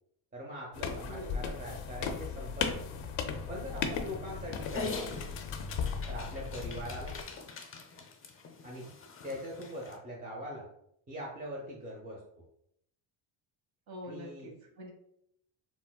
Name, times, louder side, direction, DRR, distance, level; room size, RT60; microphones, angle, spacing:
voice 1, 0.3-2.8 3.5-5.3 6.1-7.2 8.6-8.9 9.2-10.7 11.1-12.2 14.1-14.5, equal, 20° right, -3 dB, 0.6 m, -42 dB
sound 1, 0.7-7.2, left 6 dB, 70° left, 0.6 m, -36 dB
voice 2, 1.1-1.5 13.9-14.9, equal, 45° right, 1 dB, 1.0 m, -45 dB
Dog, 4.6-10.0, left 4 dB, 25° left, 0.5 m, -43 dB
3.7 x 2.1 x 2.2 m, 0.74 s
supercardioid pair, 80°, 50 cm